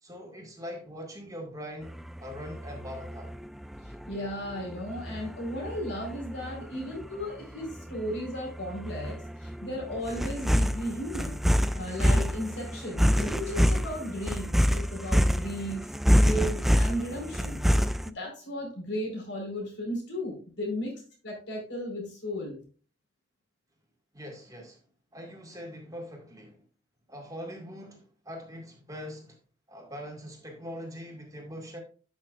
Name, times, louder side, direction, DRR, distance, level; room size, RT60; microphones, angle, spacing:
voice 1, 0.0-3.3 24.1-24.8 25.1-26.6 27.1-29.4 29.7-31.8, equal, 20° right, 2.0 m, -42 dB
sound 1, 1.9-18.1, equal, ahead, 0.3 m, -27 dB
voice 2, 3.8-11.4 11.7-17.6 18.0-22.6, equal, 65° left, 4.5 m, -35 dB
13.0 x 6.2 x 2.5 m
head